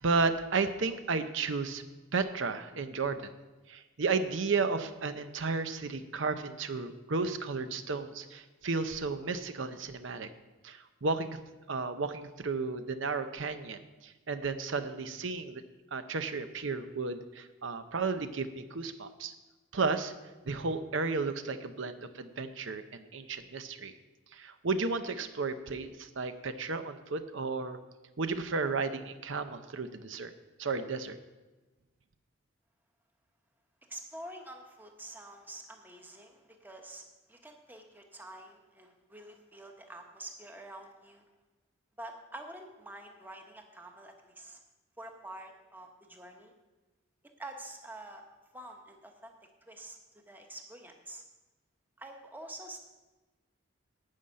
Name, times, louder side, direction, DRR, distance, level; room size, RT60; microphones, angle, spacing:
voice 1, 0.0-1.8 2.1-3.3 3.7-10.3 10.6-11.4 11.7-15.6 15.9-19.3 19.7-20.1 20.5-23.9 24.3-27.8 28.2-30.3 30.6-31.2, right 4 dB, 70° right, 10 dB, 0.7 m, -33 dB
voice 2, 33.9-41.2 42.0-44.6 45.0-46.5 47.4-49.3 49.6-50.0 50.3-51.2 52.0-52.8, right 1 dB, 10° right, 3 dB, 1.1 m, -47 dB
11.5 x 5.6 x 8.7 m, 1.2 s
head